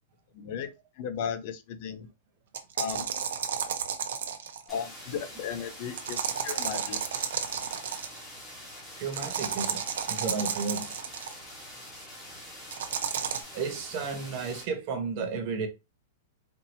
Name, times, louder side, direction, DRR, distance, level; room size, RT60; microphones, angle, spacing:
voice 1, 0.3-0.7 1.0-2.1 2.8-3.1 4.7-7.0, left 7 dB, 40° left, 0.6 m, -35 dB
sound 1, 2.5-4.7 6.0-8.2 9.1-11.3 12.7-13.4, right 7 dB, 75° right, 0.8 m, -32 dB
sound 2, 4.7-14.6, left 1 dB, 5° left, 1.2 m, -45 dB
voice 2, 7.4-7.7 8.1-8.2 9.0-10.9 13.5-15.7, right 5 dB, 35° right, 0.9 m, -33 dB
4.4 x 2.7 x 2.7 m
supercardioid pair, 175°, 0 cm